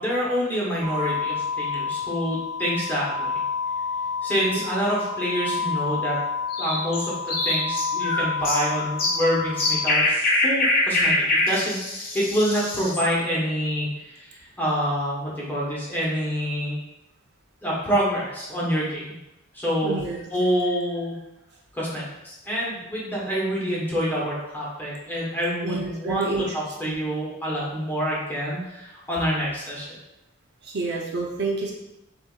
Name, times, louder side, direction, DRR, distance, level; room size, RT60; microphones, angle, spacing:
voice 1, 0.0-3.3 4.2-6.2 6.6-16.8 17.6-19.1 19.5-20.0 20.3-21.1 21.7-29.9, equal, 10° left, -6 dB, 1.3 m, -27 dB
sound 1, 0.8-9.9, left 5 dB, 20° right, 0.3 m, -30 dB
sound 2, 6.5-13.1, left 2 dB, 45° left, 1.0 m, -24 dB
voice 2, 19.8-20.2 25.6-26.5 26.8-27.0 30.6-31.7, right 3 dB, 55° right, -2 dB, 0.7 m, -29 dB
6.7 x 2.8 x 2.5 m, 0.93 s
head